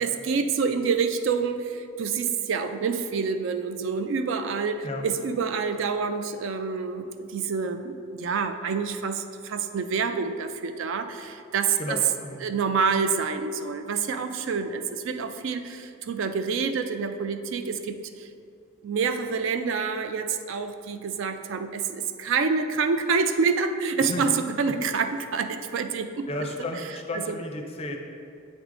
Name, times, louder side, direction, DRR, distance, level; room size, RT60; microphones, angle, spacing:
voice 1, 0.0-12.0 12.4-18.3 18.8-26.3 26.8-26.9 27.1-27.4, right 5 dB, 65° right, 9 dB, 0.4 m, -27 dB
voice 2, 11.8-12.5 24.0-24.3 26.3-28.0, left 1 dB, 30° left, 3 dB, 0.5 m, -33 dB
8.0 x 3.6 x 3.6 m, 2.6 s
head